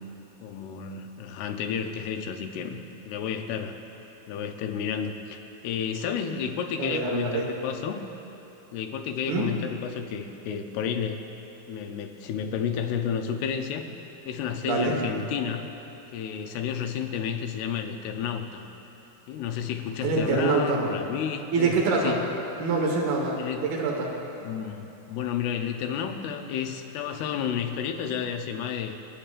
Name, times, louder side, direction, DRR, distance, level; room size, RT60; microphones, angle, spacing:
voice 1, 0.4-2.8 3.1-3.8 4.3-5.4 5.6-8.0 8.7-11.2 11.7-13.8 14.3-15.7 16.1-18.7 19.3-21.7 22.0-22.3 23.4-23.7 24.4-29.0, left 7 dB, 90° left, 5 dB, 2.7 m, -31 dB
voice 2, 6.8-7.4 9.3-9.5 14.6-14.9 20.0-20.8 21.5-22.2 22.6-23.3 23.6-24.1, right 4 dB, 75° right, -1 dB, 3.3 m, -25 dB
26.5 x 9.0 x 2.5 m, 3.0 s
omnidirectional pair, 4.5 m